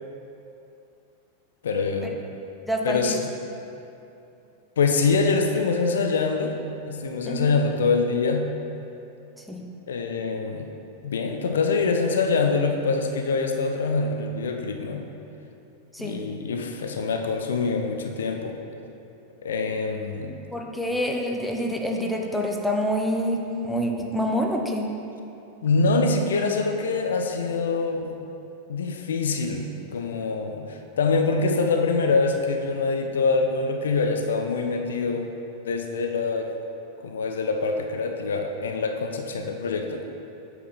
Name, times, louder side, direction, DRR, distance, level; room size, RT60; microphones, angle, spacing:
voice 1, 1.6-2.2 2.8-3.3 4.8-6.6 6.8-8.5 9.9-10.7 11.0-15.1 16.0-18.6 19.4-20.4 25.6-28.1 28.7-29.6 29.9-35.3 35.6-36.5 37.0-40.0, left 4 dB, 65° left, 4 dB, 0.6 m, -24 dB
voice 2, 2.7-3.1 7.3-7.6 9.5-9.7 15.9-16.2 20.2-24.9, equal, ahead, 0 dB, 0.8 m, -27 dB
8.4 x 4.8 x 5.4 m, 2.7 s
figure-of-eight pair, 90°, 0 cm